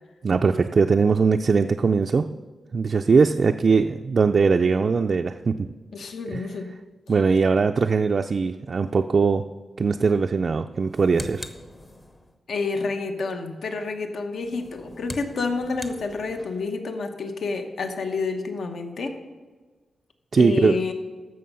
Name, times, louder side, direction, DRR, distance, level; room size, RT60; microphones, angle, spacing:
voice 1, 0.2-2.3 2.7-5.7 6.3-6.4 7.1-9.4 9.8-11.5 20.3-20.8, right 5 dB, 45° right, 5 dB, 0.3 m, -20 dB
voice 2, 5.9-6.7 12.5-19.2 20.3-20.9, left 4 dB, 65° left, 6 dB, 1.0 m, -29 dB
sound 1, 10.7-12.4 14.4-16.7, left 1 dB, 20° left, 0.8 m, -41 dB
14.0 x 6.2 x 5.5 m, 1.4 s
wide cardioid pair, 125°, 0 cm